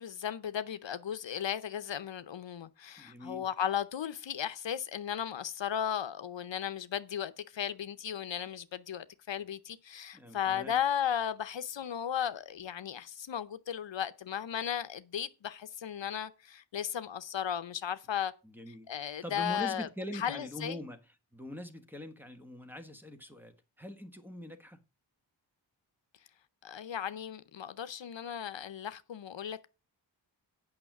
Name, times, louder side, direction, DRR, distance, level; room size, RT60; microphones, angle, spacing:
voice 1, 0.0-18.3 18.9-19.9 20.1-20.8 26.6-29.7, left 9 dB, 75° left, 0.7 m, -35 dB
voice 2, 3.0-3.4 10.1-10.8 18.4-21.0 21.3-24.8, left 1 dB, 5° right, 1.3 m, -43 dB
8.8 x 5.8 x 5.9 m
wide cardioid pair, 100°, 45 cm